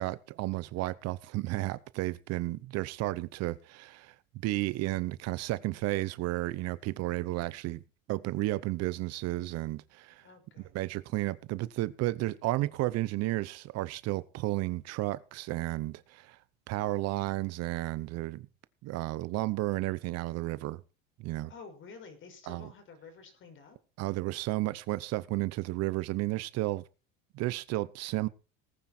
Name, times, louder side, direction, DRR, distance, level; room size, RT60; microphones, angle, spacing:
voice 1, 0.0-4.1 4.4-7.8 8.1-10.2 10.7-16.4 16.7-18.5 18.8-20.8 21.2-21.5 22.5-22.7 24.0-26.8 27.3-28.3, right 18 dB, 55° right, 0.9 m, -32 dB
voice 2, 10.1-10.7 21.5-23.8, left 5 dB, 40° left, 5.6 m, -50 dB
19.0 x 9.4 x 4.4 m
cardioid pair, 140°, 30 cm